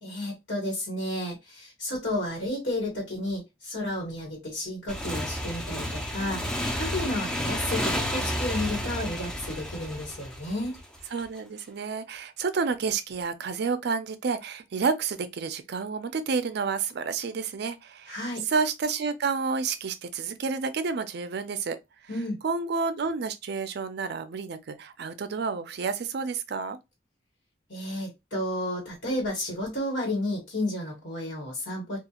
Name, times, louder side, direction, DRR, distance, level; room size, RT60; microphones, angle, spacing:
voice 1, 0.0-10.8 18.1-18.4 22.1-22.4 27.7-32.0, left 1 dB, 75° left, 1.3 m, -32 dB
Motorcycle / Engine, 4.9-11.2, equal, 5° left, 0.4 m, -31 dB
voice 2, 6.2-6.5 11.1-18.2 18.5-21.8 22.4-26.8, right 5 dB, 60° right, 0.4 m, -30 dB
2.4 x 2.4 x 2.8 m
head